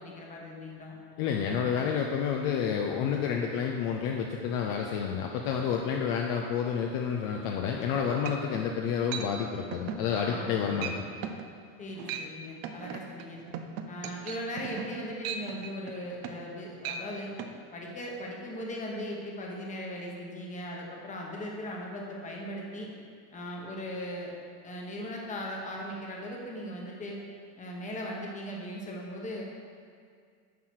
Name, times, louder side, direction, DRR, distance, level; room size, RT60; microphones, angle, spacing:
voice 1, 0.0-1.0 10.2-10.9 11.8-13.4 13.9-17.3 17.7-22.9 23.3-24.3 24.6-27.2 27.6-29.4, equal, 15° left, -1 dB, 1.2 m, -38 dB
voice 2, 1.2-10.9, left 7 dB, 45° left, 2 dB, 0.7 m, -29 dB
sound 1, 7.8-7.9 8.3-8.7 9.1-9.3 9.7-10.0 10.4-10.5 10.8-11.0 11.2-11.5 11.9-12.3 12.6-16.5 16.8-17.0 17.4-17.5, right 7 dB, 45° right, 0.6 m, -37 dB
10.5 x 3.9 x 6.4 m, 2.2 s
supercardioid pair, 155°, 47 cm